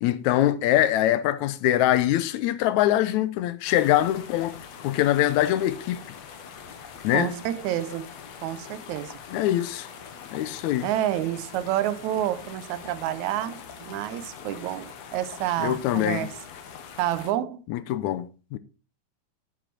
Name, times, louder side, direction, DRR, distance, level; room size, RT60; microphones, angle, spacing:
voice 1, 0.0-6.0 7.0-7.3 9.3-9.9 10.3-10.9 15.6-16.3 17.7-18.6, left 13 dB, 80° left, 2.0 m, -23 dB
sound 1, 3.7-17.3, left 7 dB, 65° left, 2.3 m, -43 dB
voice 2, 7.1-8.1 8.4-9.1 10.8-16.3 17.0-17.6, right 12 dB, 85° right, 2.0 m, -29 dB
9.2 x 8.0 x 4.5 m
omnidirectional pair, 3.4 m